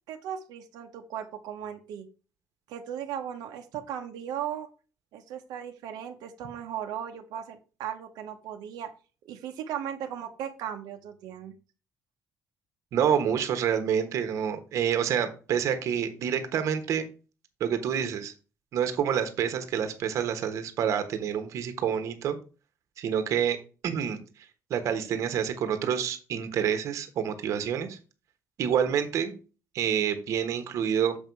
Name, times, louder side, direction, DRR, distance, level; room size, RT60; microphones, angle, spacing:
voice 1, 0.1-2.1 2.7-4.7 5.1-8.9 9.2-11.5, right 9 dB, 80° right, 4 dB, 1.0 m, -37 dB
voice 2, 12.9-17.0 17.6-18.3 18.7-22.4 23.0-23.6 23.8-24.2 24.7-28.0 28.6-29.3 29.7-31.2, right 8 dB, 50° right, 9 dB, 1.2 m, -27 dB
7.1 x 5.5 x 4.5 m, 0.34 s
cardioid pair, 180°, 7 cm